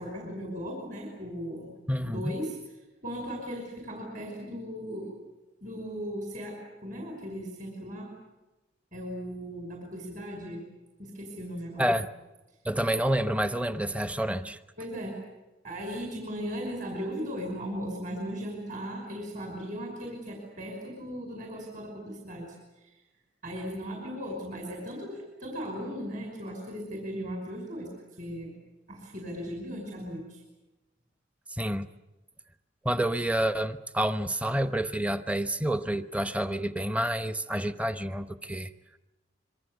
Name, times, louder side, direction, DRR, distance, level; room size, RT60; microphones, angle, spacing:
voice 1, 0.0-1.7 2.0-2.6 3.0-5.1 5.6-8.1 8.9-10.6 11.0-12.0 14.8-15.2 15.6-22.6 22.8-22.9 23.4-27.9 28.2-28.5 28.9-30.4, equal, 40° right, 2 dB, 5.6 m, -37 dB
voice 2, 1.9-2.4 11.8-12.1 12.6-14.6 31.5-31.9 32.8-38.7, right 1 dB, 5° right, 11 dB, 0.9 m, -28 dB
26.5 x 23.5 x 8.1 m, 1.0 s
head